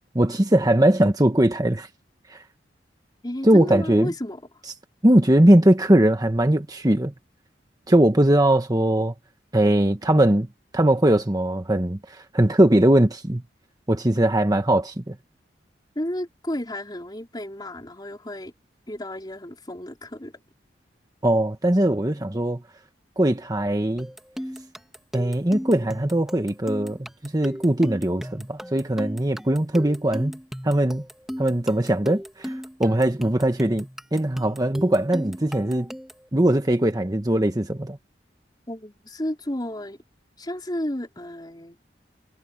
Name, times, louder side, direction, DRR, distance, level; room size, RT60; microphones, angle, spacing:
voice 1, 0.1-1.9 2.3-2.4 3.4-4.1 5.0-7.1 7.9-9.1 9.5-10.5 10.7-13.4 13.9-15.2 21.2-22.6 23.2-24.1 25.1-30.3 30.6-31.0 31.4-33.9 34.1-35.9 36.3-38.0, right 1 dB, 20° right, 1.2 m, -20 dB
voice 2, 3.2-4.4 16.0-18.5 18.9-20.4 38.7-40.0 40.4-41.8, left 1 dB, 25° left, 4.0 m, -32 dB
sound 1, 24.0-36.3, equal, ahead, 1.7 m, -36 dB
head